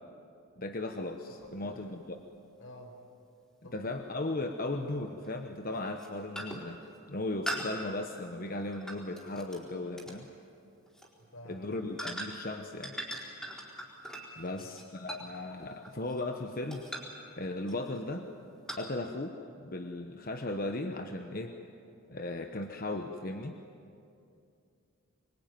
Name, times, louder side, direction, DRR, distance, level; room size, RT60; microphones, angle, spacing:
voice 1, 0.6-2.2 3.7-6.8 7.1-10.3 11.5-12.9 14.4-16.9 17.4-18.3 18.8-21.6 22.1-23.6, left 2 dB, 45° left, 5 dB, 1.1 m, -37 dB
voice 2, 1.3-1.8 2.6-3.0 3.6-4.0 11.2-11.8 14.3-14.8, left 1 dB, 80° left, 3 dB, 5.1 m, -51 dB
sound 1, 1.4-1.5 4.0-4.1 5.2-5.5 5.9-6.1 6.4-6.7 7.5-9.6 10.0-10.2 10.9-11.1 12.0-12.5 12.8-16.3 16.7-17.2 17.7-18.0 18.7-18.8, right 1 dB, 5° left, 4.4 m, -41 dB
26.0 x 22.5 x 9.3 m, 2.6 s
head